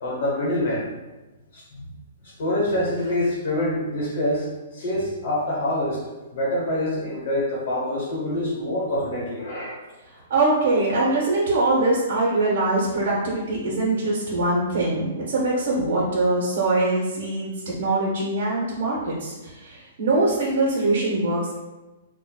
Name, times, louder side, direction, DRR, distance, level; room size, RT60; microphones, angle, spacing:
voice 1, 0.0-0.9 1.5-1.9 2.4-6.0 6.3-9.8, left 1 dB, 60° left, -5 dB, 1.0 m, -26 dB
voice 2, 10.3-17.5 17.8-21.6, right 2 dB, 50° right, -5 dB, 0.7 m, -23 dB
4.5 x 2.2 x 2.3 m, 1.1 s
hypercardioid pair, 175°, 0 cm